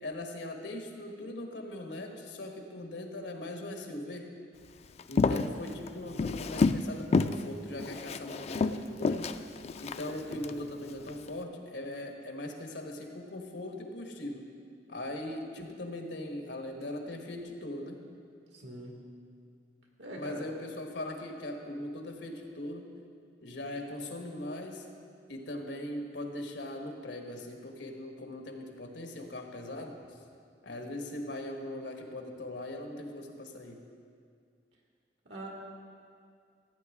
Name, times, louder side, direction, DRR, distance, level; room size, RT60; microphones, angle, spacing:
voice 1, 0.0-4.3 5.1-9.3 9.8-14.5 14.9-18.0 20.2-22.9 23.4-24.9 25.3-29.9 30.6-33.8, left 1 dB, 85° left, 3 dB, 1.3 m, -40 dB
Walk footsteps, 5.0-6.9 7.1-7.4 7.8-10.5 11.0-11.3, left 4 dB, 35° left, 0.3 m, -29 dB
voice 2, 5.6-6.2 10.0-10.5 18.5-19.0 20.0-20.5 35.2-35.5, right 1 dB, 90° right, -1 dB, 2.1 m, -44 dB
15.0 x 8.9 x 3.6 m, 2.2 s
head